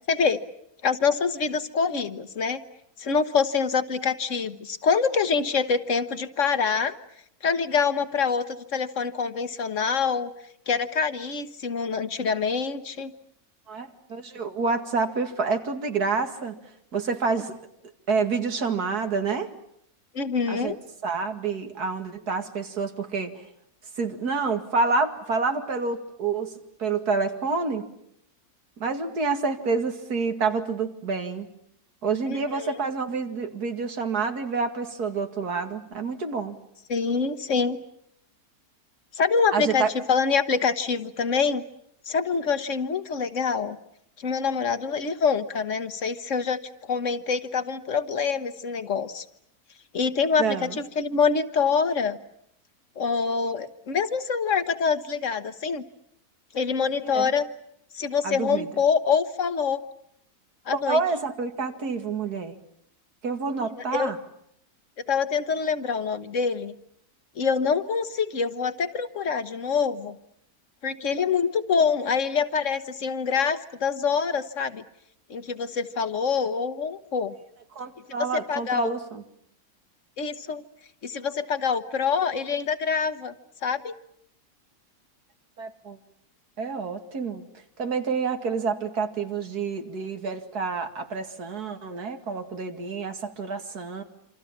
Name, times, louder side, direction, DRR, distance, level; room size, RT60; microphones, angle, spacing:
voice 1, 0.1-0.4 0.8-2.6 3.0-6.9 7.4-10.3 10.7-13.1 20.1-20.8 32.3-32.8 36.9-37.8 39.1-41.6 42.1-43.8 44.2-46.6 46.9-49.2 49.9-52.2 53.0-55.8 56.5-57.5 57.9-59.8 60.7-61.0 63.9-64.1 65.1-66.7 67.4-70.2 70.8-74.8 75.3-77.3 78.5-78.9 80.2-80.6 81.0-83.3 83.6-83.9, left 5 dB, 55° left, 11 dB, 1.6 m, -25 dB
voice 2, 13.7-16.6 16.9-17.5 18.1-19.5 20.5-20.8 21.0-23.3 24.0-27.9 28.8-31.5 32.0-36.6 39.5-39.9 50.4-50.8 57.0-57.3 58.2-58.7 60.7-62.6 63.2-64.2 77.8-79.2 85.6-86.0 86.6-87.5 87.8-94.0, right 4 dB, 90° right, 6 dB, 2.7 m, -28 dB
28.0 x 26.0 x 7.3 m, 0.71 s
omnidirectional pair, 1.6 m